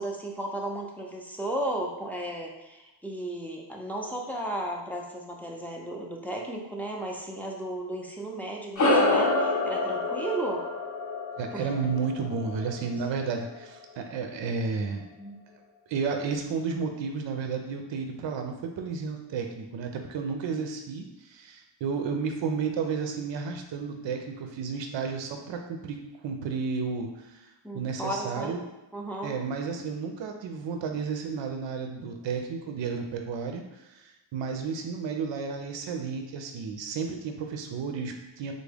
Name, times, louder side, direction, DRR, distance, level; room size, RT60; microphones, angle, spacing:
voice 1, 0.0-10.6 11.5-11.9 15.2-15.4 27.6-28.5 28.9-29.4, right 1 dB, 5° left, -2 dB, 0.5 m, -34 dB
sound 1, 8.8-13.5, left 2 dB, 40° left, 0.7 m, -27 dB
voice 2, 11.4-15.0 15.9-28.6 29.2-38.5, right 5 dB, 70° right, 4 dB, 0.5 m, -32 dB
3.4 x 2.1 x 3.4 m, 1.0 s
cardioid pair, 75°, 46 cm